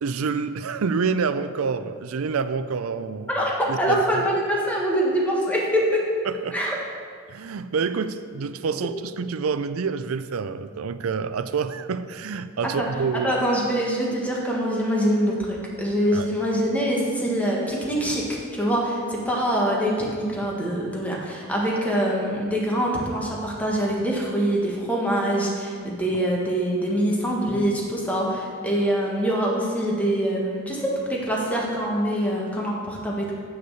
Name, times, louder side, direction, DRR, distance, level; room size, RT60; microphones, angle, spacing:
voice 1, 0.0-3.3 3.7-4.2 6.2-6.6 7.3-13.3 16.1-16.3, right 5 dB, 80° right, 12 dB, 0.5 m, -27 dB
voice 2, 3.3-5.8 6.5-6.7 12.8-12.9 13.2-33.3, equal, 5° left, -3 dB, 1.6 m, -24 dB
8.0 x 6.7 x 7.0 m, 2.1 s
head